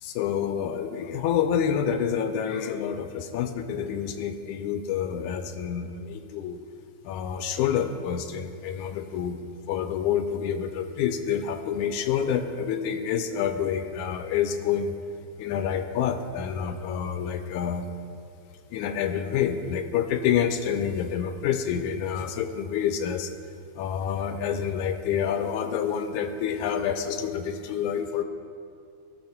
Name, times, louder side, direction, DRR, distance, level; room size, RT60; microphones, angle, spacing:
voice 1, 0.0-6.6 7.0-14.9 15.4-17.9 18.7-23.3 23.8-28.2, left 8 dB, 80° left, 8 dB, 1.8 m, -28 dB
16.5 x 6.2 x 4.4 m, 2.5 s
omnidirectional pair, 3.7 m